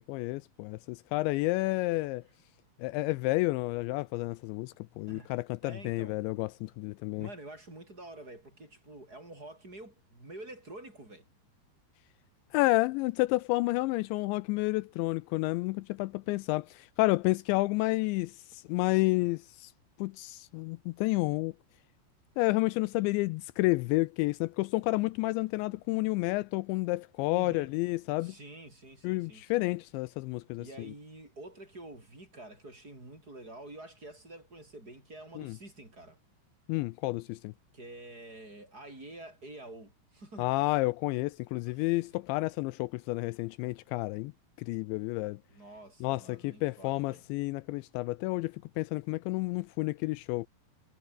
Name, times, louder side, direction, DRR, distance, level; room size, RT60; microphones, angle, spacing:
voice 1, 0.1-2.2 2.8-7.3 12.5-19.7 20.0-21.5 22.4-28.4 29.0-30.9 35.4-35.6 36.7-37.5 40.4-44.3 44.6-45.4 46.0-50.5, left 21 dB, 85° left, 2.7 m, -30 dB
voice 2, 5.6-6.2 7.2-11.3 27.3-27.7 28.2-29.6 30.6-36.2 37.7-40.5 41.7-41.9 45.5-47.2, right 2 dB, 20° right, 7.8 m, -48 dB
omnidirectional pair, 5.5 m